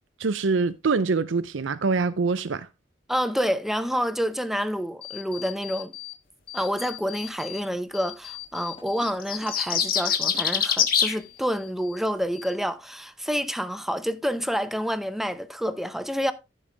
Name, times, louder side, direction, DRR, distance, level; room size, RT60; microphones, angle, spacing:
voice 1, 0.2-2.7, right 4 dB, 85° right, 0.6 m, -24 dB
voice 2, 3.1-5.9 6.5-16.3, equal, ahead, 0.7 m, -28 dB
sound 1, 5.0-6.2 6.5-7.6 7.9-10.6 10.9-12.0 12.3-12.9, left 14 dB, 30° left, 1.9 m, -41 dB
sound 2, 9.0-11.2, left 8 dB, 50° left, 1.6 m, -23 dB
15.0 x 5.4 x 3.4 m
head